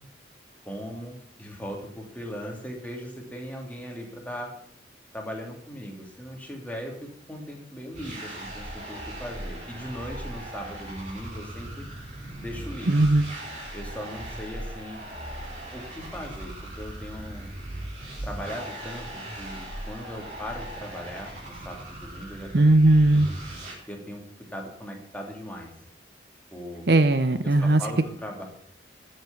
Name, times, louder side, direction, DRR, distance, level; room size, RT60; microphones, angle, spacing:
voice 1, 0.6-4.5 5.1-11.9 12.4-13.0 13.7-15.0 15.7-17.5 18.2-22.6 23.1-23.2 23.9-24.2 24.5-25.7 26.5-26.8 27.4-28.4, equal, 10° left, 0 dB, 2.8 m, -38 dB
sound 1, 7.9-23.7, right 1 dB, 40° right, 3.9 m, -38 dB
voice 2, 12.9-13.2 22.5-23.3 26.9-27.8, right 2 dB, 60° right, 11 dB, 0.7 m, -18 dB
13.0 x 7.7 x 7.1 m, 0.66 s
head